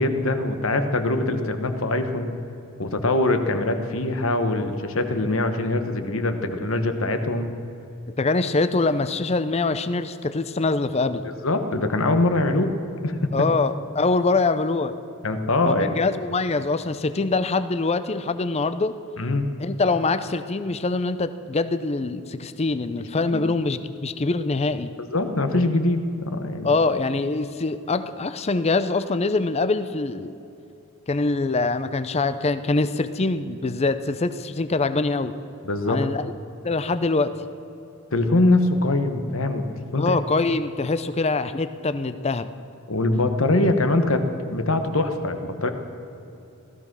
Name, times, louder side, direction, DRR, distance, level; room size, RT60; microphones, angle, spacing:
voice 1, 0.0-2.3 2.8-7.5 11.2-12.8 13.0-13.2 15.2-15.9 19.2-19.5 23.2-23.4 25.1-26.7 35.6-36.1 38.1-39.7 39.9-40.2 42.9-44.2 44.5-45.7, left 2 dB, 65° left, 7 dB, 1.2 m, -23 dB
voice 2, 8.2-11.2 13.3-14.9 15.6-18.9 19.6-24.9 26.6-30.3 31.1-35.3 35.9-36.2 36.6-37.3 40.0-42.5, left 3 dB, 30° left, 11 dB, 0.5 m, -24 dB
16.5 x 14.0 x 6.2 m, 2.8 s
head